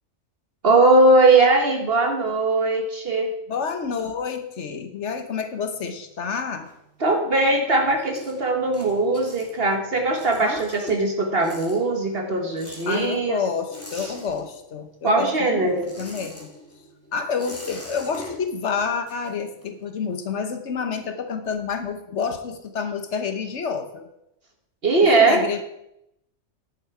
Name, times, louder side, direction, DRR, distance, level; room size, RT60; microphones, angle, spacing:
voice 1, 0.6-3.3 7.0-13.4 13.9-14.1 15.0-15.9 24.8-25.4, right 2 dB, 55° right, 3 dB, 1.5 m, -20 dB
voice 2, 3.5-6.7 10.4-11.0 12.9-16.5 17.1-24.1 25.0-25.6, left 6 dB, 70° left, 7 dB, 1.3 m, -29 dB
sound 1, 5.7-7.3 7.7-14.9 15.1-19.8, left 1 dB, 10° left, 2.1 m, -43 dB
10.0 x 8.5 x 4.5 m, 0.82 s
omnidirectional pair, 1.3 m